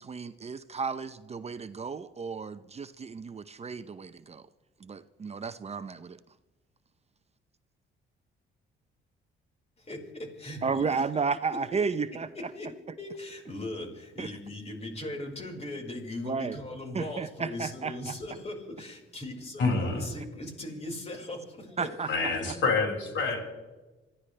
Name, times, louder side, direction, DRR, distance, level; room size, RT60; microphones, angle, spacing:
voice 1, 0.0-4.4 4.8-6.2 10.6-12.3 14.2-14.3 16.2-16.6 16.9-18.1 21.8-22.1 22.5-22.6, right 5 dB, 30° right, 11 dB, 0.7 m, -33 dB
voice 2, 9.8-10.9 12.3-12.7 13.0-22.1, left 1 dB, 30° left, 1 dB, 4.9 m, -39 dB
voice 3, 19.6-20.1 22.0-23.4, left 4 dB, 75° left, 0 dB, 6.1 m, -27 dB
26.5 x 15.5 x 3.4 m, 1.2 s
cardioid pair, 90°, 20 cm